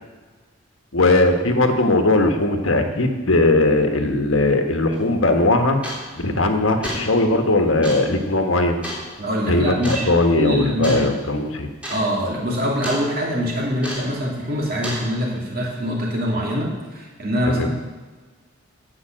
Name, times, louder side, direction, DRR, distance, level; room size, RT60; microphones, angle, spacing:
voice 1, 0.9-5.8 6.1-8.8 9.5-11.7 17.4-17.7, left 2 dB, 70° left, 5 dB, 1.5 m, -19 dB
sound 1, 4.9-5.0 5.8-6.2 6.6-7.1 7.8-8.1 8.8-9.0 9.8-10.1 10.8-11.1 11.4-11.5 11.8-12.0 12.3-13.0 13.8-14.2 14.8-15.1, equal, 5° right, 3.2 m, -30 dB
voice 2, 9.2-11.1 11.9-17.7, equal, 45° right, -2 dB, 3.0 m, -24 dB
16.5 x 5.9 x 7.6 m, 1.4 s
head